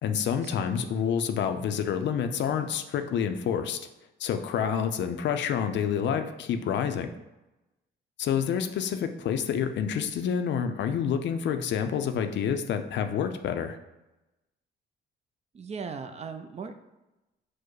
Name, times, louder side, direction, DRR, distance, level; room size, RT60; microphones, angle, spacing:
voice 1, 0.0-3.8 4.2-7.1 8.2-13.8, left 8 dB, 65° left, 8 dB, 0.5 m, -28 dB
voice 2, 15.5-16.8, right 5 dB, 35° right, 8 dB, 0.4 m, -38 dB
4.7 x 2.1 x 4.6 m, 1.0 s
cardioid pair, 90°, 20 cm